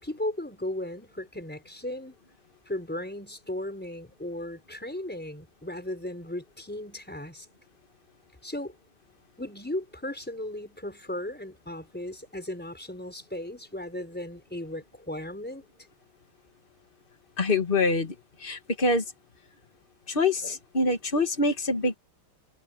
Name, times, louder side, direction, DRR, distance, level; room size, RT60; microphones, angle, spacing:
voice 1, 0.0-2.2 2.7-7.5 8.4-8.7 9.4-15.6, left 1 dB, 5° left, 4.7 m, -36 dB
voice 2, 17.4-18.1 18.4-19.0 20.1-22.0, left 2 dB, 25° left, 2.3 m, -25 dB
omnidirectional pair, 2.3 m